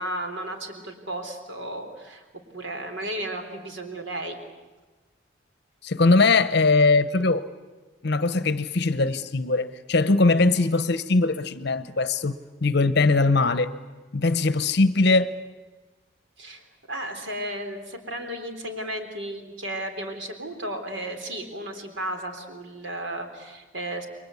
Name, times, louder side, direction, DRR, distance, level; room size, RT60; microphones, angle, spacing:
voice 1, 0.0-2.2 2.5-4.4 16.4-24.1, right 1 dB, 65° right, 4.0 m, -34 dB
voice 2, 5.8-7.4 8.0-13.7 14.1-15.3, left 3 dB, 55° left, 0.8 m, -21 dB
29.0 x 23.0 x 8.4 m
head